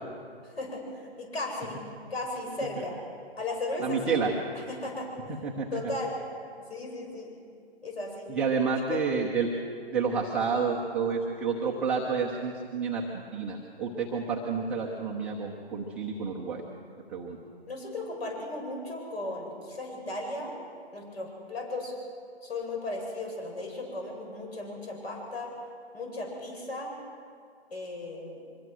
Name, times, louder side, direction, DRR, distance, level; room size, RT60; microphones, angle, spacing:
voice 1, 0.4-1.8 2.1-3.0 3.4-4.2 4.7-5.1 5.7-6.2 6.6-7.3 7.8-8.3 8.7-9.1 17.7-20.5 20.9-21.9 22.4-25.5 25.9-27.0 27.7-28.4, left 2 dB, 70° left, 1 dB, 7.8 m, -36 dB
voice 2, 3.8-4.3 5.4-5.7 8.3-9.5 9.9-16.6 17.1-17.4, right 5 dB, 5° right, -5 dB, 0.6 m, -29 dB
24.5 x 21.0 x 6.2 m, 2.3 s
figure-of-eight pair, 150°, 32 cm